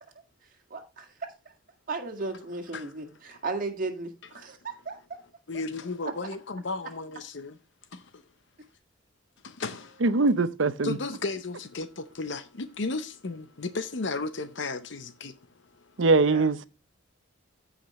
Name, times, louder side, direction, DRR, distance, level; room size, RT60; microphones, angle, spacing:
voice 1, 0.7-1.3 1.9-5.2 6.1-6.2 16.2-16.5, right 3 dB, 45° right, 1.9 m, -35 dB
voice 2, 5.5-7.6 7.9-8.2 9.4-10.0 10.8-15.4, left 3 dB, 60° left, 0.8 m, -34 dB
voice 3, 10.0-11.0 16.0-16.6, right 3 dB, 70° right, 0.7 m, -22 dB
15.5 x 5.2 x 3.1 m
head